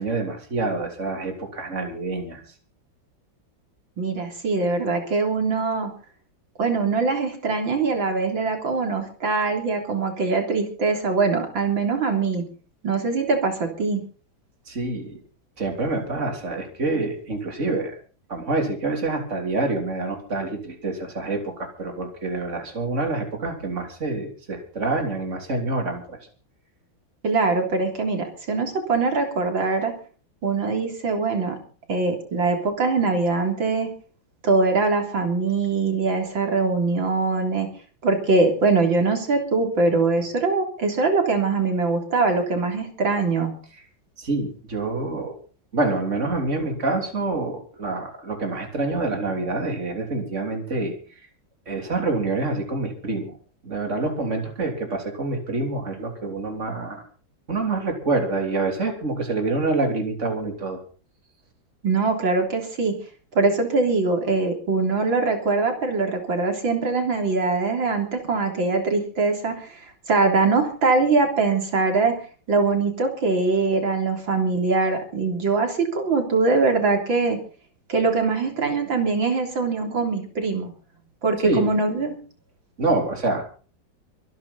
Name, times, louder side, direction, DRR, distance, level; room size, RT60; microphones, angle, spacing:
voice 1, 0.0-2.4 14.7-15.2 15.6-18.0 18.3-26.2 44.2-45.4 45.7-51.3 51.7-53.4 53.6-57.0 57.5-60.8 81.4-81.6 82.8-83.4, right 3 dB, 35° right, 3 dB, 3.8 m, -26 dB
voice 2, 4.0-5.9 6.6-12.4 12.8-14.0 27.2-29.9 30.4-31.6 31.9-33.9 34.4-37.7 38.0-43.5 61.8-63.0 63.4-72.2 72.5-77.4 77.9-80.7 81.2-82.1, right 3 dB, 75° right, 3 dB, 4.1 m, -22 dB
24.5 x 11.0 x 4.2 m, 0.39 s
omnidirectional pair, 2.1 m